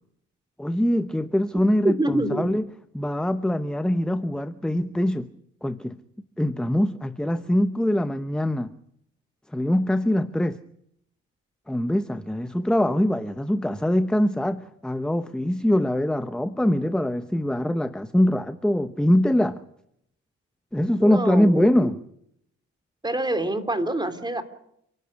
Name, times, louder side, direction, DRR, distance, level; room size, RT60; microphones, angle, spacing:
voice 1, 0.6-2.7 2.9-5.3 5.6-6.0 6.4-8.7 9.5-10.6 11.7-19.6 20.7-22.0, left 1 dB, 5° left, 0.8 m, -23 dB
voice 2, 1.8-2.5 21.0-21.9 23.0-24.4, right 1 dB, 15° right, 3.1 m, -26 dB
29.5 x 12.0 x 9.6 m
cardioid pair, 90°, 30 cm